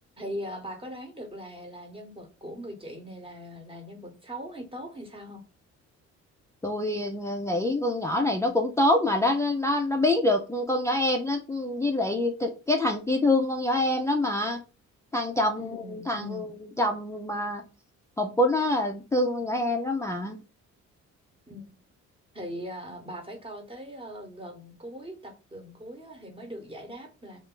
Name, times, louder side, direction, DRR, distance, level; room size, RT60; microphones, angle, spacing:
voice 1, 0.2-5.4 15.6-16.5 21.5-21.8 22.3-27.4, equal, 20° right, 3 dB, 1.0 m, -40 dB
voice 2, 6.6-14.6 15.1-17.6 18.2-20.4, left 1 dB, 10° left, 2 dB, 0.4 m, -26 dB
2.5 x 2.4 x 3.7 m, 0.32 s
cardioid pair, 90°, 30 cm